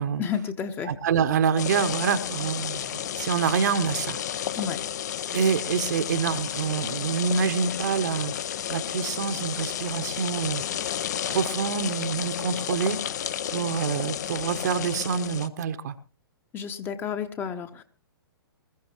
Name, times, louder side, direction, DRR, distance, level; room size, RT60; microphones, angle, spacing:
voice 1, 0.2-0.9 4.6-4.8 16.5-17.8, left 7 dB, 15° left, 9 dB, 0.9 m, -31 dB
voice 2, 0.8-4.2 5.3-8.3 8.7-10.6 11.3-13.0 13.5-15.9, right 6 dB, 45° right, 10 dB, 1.0 m, -26 dB
sound 1, 1.6-15.5, left 10 dB, 45° left, 0.6 m, -32 dB
21.0 x 14.5 x 3.0 m, 0.37 s
figure-of-eight pair, 120°, 13 cm